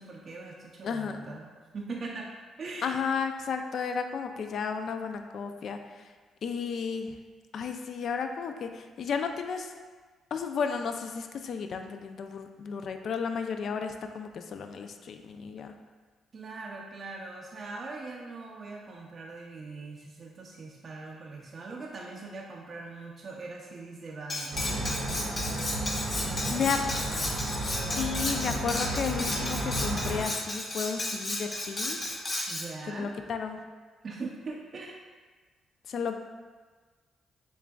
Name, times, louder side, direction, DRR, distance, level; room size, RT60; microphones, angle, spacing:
voice 1, 0.0-2.3 2.6-3.0 16.3-24.9 26.2-27.4 32.5-33.1 34.0-35.0, right 3 dB, 45° right, -2 dB, 0.4 m, -41 dB
voice 2, 0.8-1.4 2.8-6.1 6.4-7.1 7.5-9.7 10.3-15.7 26.3-26.8 28.0-32.2 32.9-33.6 35.9-36.2, left 6 dB, 60° left, 6 dB, 0.3 m, -33 dB
Cutlery silverware, 24.3-32.7, left 2 dB, 35° left, 0.8 m, -33 dB
sound 1, 24.5-30.2, right 1 dB, 75° right, 0.9 m, -33 dB
6.9 x 2.4 x 2.3 m, 1.4 s
cardioid pair, 90°, 0 cm